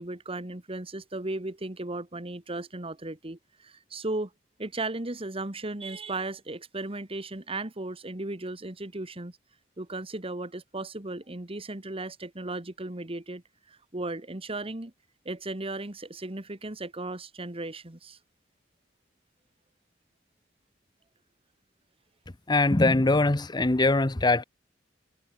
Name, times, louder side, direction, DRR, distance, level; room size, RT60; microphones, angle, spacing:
voice 1, 0.0-4.3 4.6-9.3 9.8-13.4 13.7-14.9 15.3-18.2, right 2 dB, 30° right, 1.7 m, -36 dB
voice 2, 22.5-24.4, left 2 dB, 25° left, 0.8 m, -22 dB
head